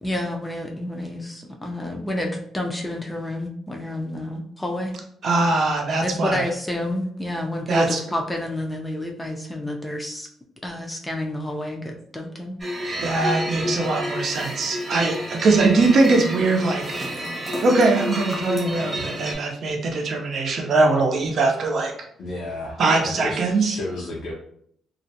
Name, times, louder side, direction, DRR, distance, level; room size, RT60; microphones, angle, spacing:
voice 1, 0.0-4.9 6.0-10.3 10.6-12.6, left 1 dB, 10° left, 2 dB, 0.5 m, -29 dB
voice 2, 5.2-6.5 7.7-8.0 13.0-16.8 17.6-21.9 22.8-23.8, right 3 dB, 60° right, 2 dB, 0.6 m, -21 dB
sound 1, 12.6-19.3, equal, 25° right, 1.0 m, -29 dB
voice 3, 22.2-24.3, left 2 dB, 70° left, -5 dB, 0.6 m, -33 dB
2.4 x 2.1 x 2.7 m, 0.65 s
cardioid pair, 90°, 0 cm